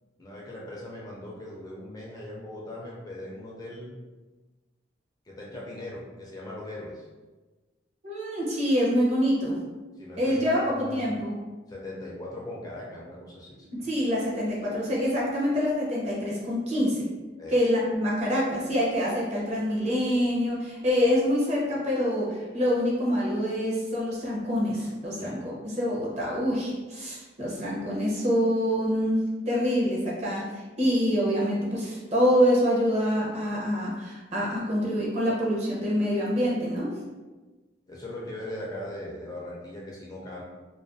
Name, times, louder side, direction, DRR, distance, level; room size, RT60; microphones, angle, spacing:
voice 1, 0.2-3.9 5.3-7.1 10.0-11.2 11.7-13.7 17.4-17.7 25.2-25.4 37.9-40.4, left 1 dB, 20° left, -4 dB, 0.4 m, -39 dB
voice 2, 8.0-9.5 10.2-11.4 13.7-17.1 17.5-30.4 30.8-36.9, equal, 35° right, -4 dB, 0.6 m, -26 dB
2.4 x 2.2 x 2.5 m, 1.2 s
head